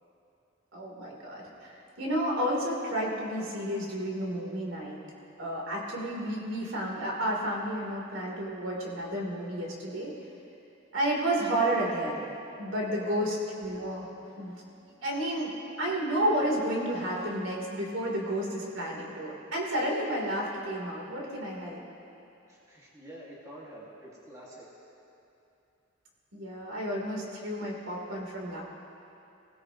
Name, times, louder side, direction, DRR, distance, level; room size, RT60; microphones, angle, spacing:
voice 1, 0.7-5.0 5.4-10.1 10.9-12.2 12.6-14.1 14.4-14.6 15.0-15.5 15.8-21.8 26.3-28.6, right 1 dB, 75° right, -3 dB, 3.6 m, -31 dB
voice 2, 12.9-13.4 22.5-24.7, equal, 15° right, -5 dB, 2.2 m, -48 dB
26.5 x 17.0 x 3.1 m, 2.8 s
head